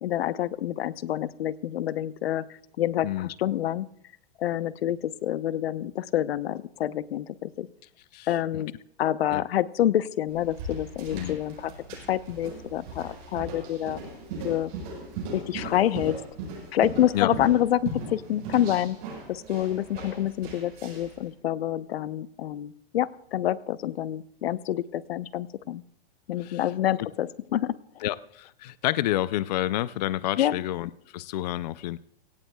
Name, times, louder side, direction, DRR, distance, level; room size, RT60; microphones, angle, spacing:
voice 1, 0.0-2.4 2.8-3.9 4.4-7.7 8.3-8.7 9.0-11.7 12.1-14.0 14.4-14.7 15.3-16.2 16.7-19.0 19.3-25.8 26.3-28.0 30.4-30.5, left 12 dB, 90° left, 16 dB, 0.8 m, -27 dB
sound 1, 10.3-21.2, right 3 dB, 40° right, 7.8 m, -38 dB
voice 2, 28.0-32.0, left 14 dB, 45° left, 17 dB, 0.4 m, -29 dB
23.5 x 17.5 x 2.3 m, 0.74 s
supercardioid pair, 165°, 30 cm